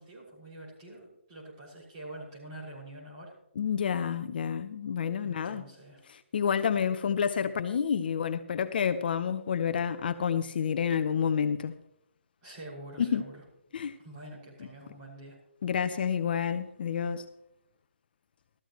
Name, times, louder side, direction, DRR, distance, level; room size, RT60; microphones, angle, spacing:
voice 1, 0.0-3.3 5.2-6.0 12.4-13.4 14.0-15.4, right 1 dB, 25° right, 6.2 m, -46 dB
voice 2, 3.6-5.6 6.1-11.7 13.0-13.2 13.7-14.0 15.6-17.3, left 7 dB, 50° left, 0.7 m, -29 dB
15.5 x 14.0 x 3.1 m
hypercardioid pair, 160°, 7 cm